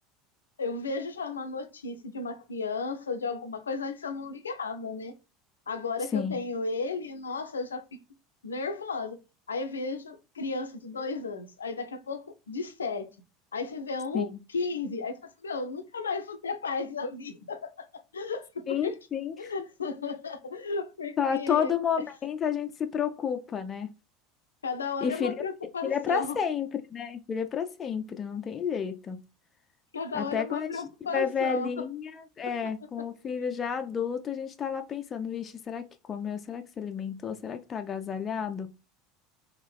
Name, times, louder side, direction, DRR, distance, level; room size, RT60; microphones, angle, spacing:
voice 1, 0.6-5.1 5.7-8.0 8.4-9.2 9.5-13.1 13.5-18.9 19.4-21.7 24.6-26.3 29.9-31.7 32.6-32.7, left 4 dB, 80° left, 0.5 m, -34 dB
voice 2, 18.7-19.5 21.2-23.9 25.0-25.3 25.8-29.2 30.1-30.7 31.1-38.8, left 7 dB, 30° left, 0.5 m, -31 dB
3.5 x 3.2 x 3.3 m
figure-of-eight pair, 75°, 0 cm